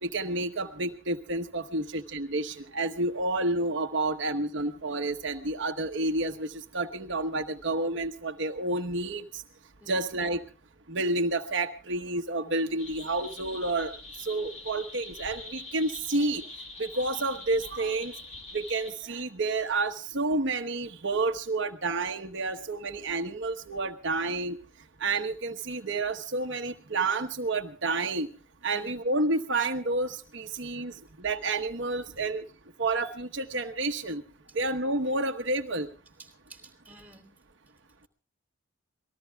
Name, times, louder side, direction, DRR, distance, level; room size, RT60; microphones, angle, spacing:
voice 1, 0.0-9.4 9.9-10.4 10.9-16.4 16.8-18.1 18.5-24.6 25.0-28.3 28.6-32.4 32.8-34.2 34.5-35.9, right 2 dB, 60° right, 4 dB, 1.1 m, -30 dB
sound 1, 12.8-18.9, left 2 dB, 35° left, 4.5 m, -44 dB
voice 2, 36.2-37.3, right 2 dB, 10° right, 5 dB, 2.9 m, -52 dB
27.0 x 19.5 x 2.3 m, 0.36 s
head